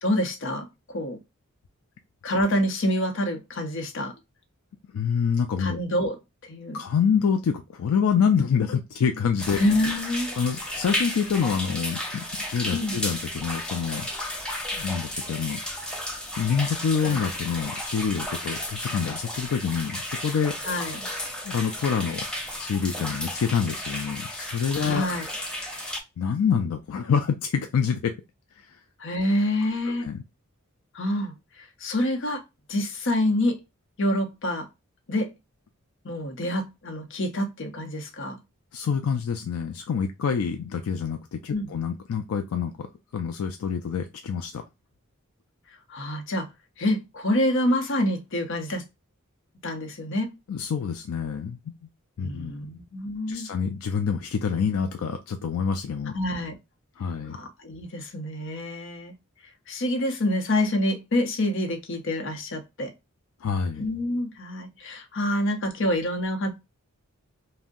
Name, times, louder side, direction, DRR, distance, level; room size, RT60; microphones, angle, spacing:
voice 1, 0.0-1.2 2.2-4.1 5.6-6.2 6.4-6.8 9.6-10.3 12.7-13.0 17.0-17.2 20.6-21.1 24.8-25.3 29.0-30.1 30.9-32.4 32.7-33.6 34.0-34.7 35.1-35.3 36.0-38.4 41.5-41.7 45.9-46.5 46.8-48.8 49.6-50.3 52.2-53.5 56.1-56.5 57.3-59.1 59.7-62.9 63.8-66.5, left 1 dB, 60° left, 0.7 m, -27 dB
voice 2, 4.9-5.8 6.7-9.6 10.4-14.1 14.7-15.6 16.4-20.6 21.4-22.3 22.6-25.1 26.2-28.1 28.6-28.8 30.0-30.2 38.7-42.9 43.1-44.6 50.5-51.8 52.2-52.7 53.3-56.1 57.0-57.4 63.4-63.9, left 6 dB, 85° left, 0.4 m, -26 dB
sound 1, 9.4-26.0, left 1 dB, 5° left, 0.5 m, -33 dB
2.6 x 2.1 x 3.6 m
head